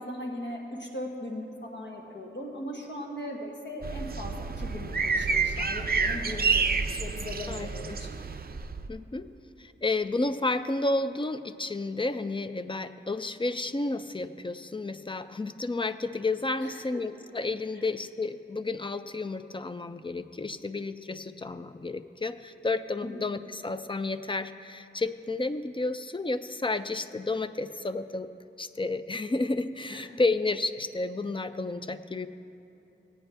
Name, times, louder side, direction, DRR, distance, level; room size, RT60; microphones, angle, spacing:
voice 1, 0.0-8.1 16.6-17.0 17.7-17.8 23.0-23.2 29.9-30.2, left 1 dB, 65° left, 0 dB, 1.2 m, -39 dB
sound 1, 3.8-8.9, right 5 dB, 50° right, 0.4 m, -29 dB
voice 2, 7.5-8.0 8.9-9.3 9.6-28.3 28.6-32.3, left 2 dB, 25° left, 11 dB, 0.4 m, -31 dB
17.5 x 8.9 x 3.4 m, 3.0 s
wide cardioid pair, 65°, 20 cm